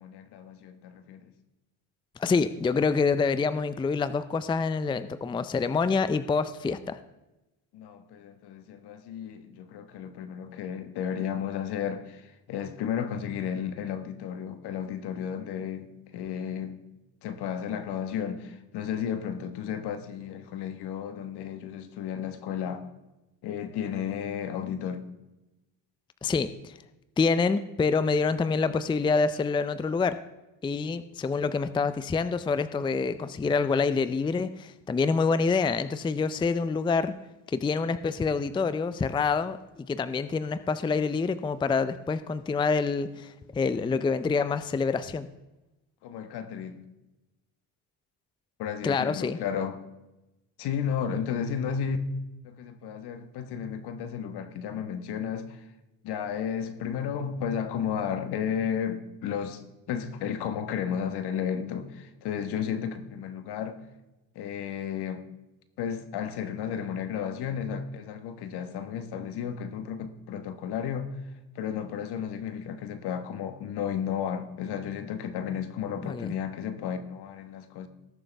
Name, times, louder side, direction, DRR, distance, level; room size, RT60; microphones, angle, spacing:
voice 1, 0.0-1.3 7.7-16.8 17.2-22.9 23.4-25.0 46.0-46.9 48.6-49.8 50.6-52.0 52.4-55.6 56.0-63.8 64.3-65.3 65.8-71.1 71.5-77.9, left 8 dB, 65° left, 1.3 m, -33 dB
voice 2, 2.2-7.0 26.2-26.7 27.2-30.2 30.6-37.1 37.5-45.3 48.8-49.4 76.0-76.3, left 4 dB, 10° left, 0.4 m, -27 dB
19.0 x 7.1 x 3.4 m
cardioid pair, 95°, 42 cm